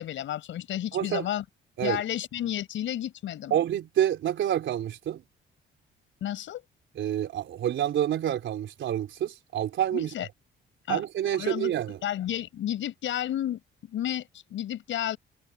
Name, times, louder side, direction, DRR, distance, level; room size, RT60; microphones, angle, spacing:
voice 1, 0.0-1.4 1.8-3.5 6.2-6.6 9.9-10.3 10.9-11.0 11.3-11.7 12.0-15.2, left 11 dB, 75° left, 5.8 m, -32 dB
voice 2, 0.9-1.3 1.8-2.0 3.5-5.2 7.0-10.1 10.9-12.0, right 11 dB, 70° right, 4.0 m, -28 dB
cardioid pair, 90°, 20 cm